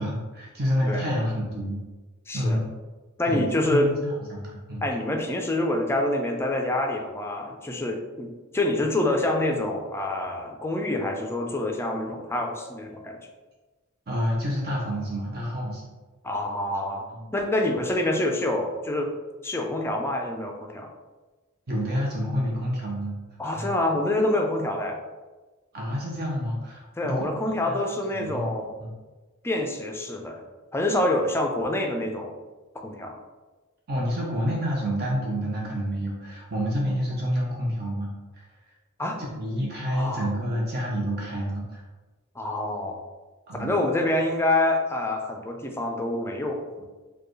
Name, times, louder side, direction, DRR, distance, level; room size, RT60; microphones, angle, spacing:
voice 1, 0.0-1.8 2.3-2.7 3.3-4.9 14.1-15.8 17.1-17.3 21.7-23.2 23.4-23.7 25.7-27.2 27.6-27.8 28.1-28.5 28.8-28.9 33.9-38.4 39.2-41.8 43.5-43.7, equal, 50° right, -3 dB, 0.7 m, -28 dB
voice 2, 2.3-2.6 3.2-3.9 4.8-8.3 8.5-13.2 16.2-17.1 17.3-19.1 19.4-20.9 23.4-25.0 27.0-28.7 29.4-30.4 30.7-32.3 32.8-33.2 39.0-39.2 39.9-40.3 42.4-43.0 43.6-46.9, left 1 dB, 10° left, 2 dB, 0.4 m, -26 dB
4.6 x 2.3 x 3.1 m, 1.2 s
head